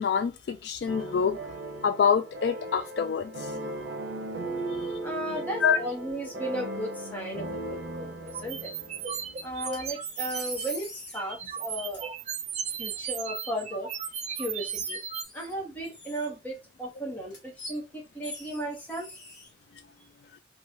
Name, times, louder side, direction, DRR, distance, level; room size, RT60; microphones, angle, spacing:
voice 1, 0.0-1.4 1.8-3.7 4.7-4.9 5.6-5.8, left 7 dB, 65° left, 0.3 m, -26 dB
sound 1, 0.9-9.9, right 2 dB, 85° right, 0.7 m, -37 dB
voice 2, 5.0-8.7 9.4-12.1 12.8-13.9 14.3-15.0 15.3-19.2, right 1 dB, 10° left, 1.0 m, -35 dB
sound 2, 8.3-10.8 11.1-15.2, right 7 dB, 40° right, 0.3 m, -35 dB
sound 3, 9.7-11.2 11.9-12.0 14.0-14.1 14.7-15.5 15.8-16.6 17.3-17.8 18.2-19.5, left 3 dB, 80° left, 1.2 m, -43 dB
3.0 x 2.3 x 2.7 m
head